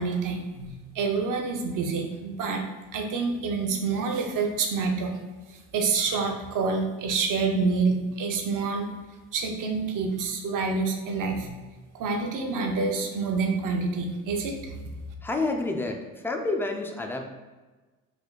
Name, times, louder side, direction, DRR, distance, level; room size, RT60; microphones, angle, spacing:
voice 1, 0.0-2.7 2.9-5.1 5.7-8.9 9.3-11.6 11.9-14.7, right 4 dB, 55° right, 3 dB, 0.7 m, -27 dB
voice 2, 15.2-17.2, left 2 dB, 5° left, 3 dB, 0.4 m, -29 dB
3.5 x 2.2 x 3.8 m, 1.2 s
supercardioid pair, 70°, 39 cm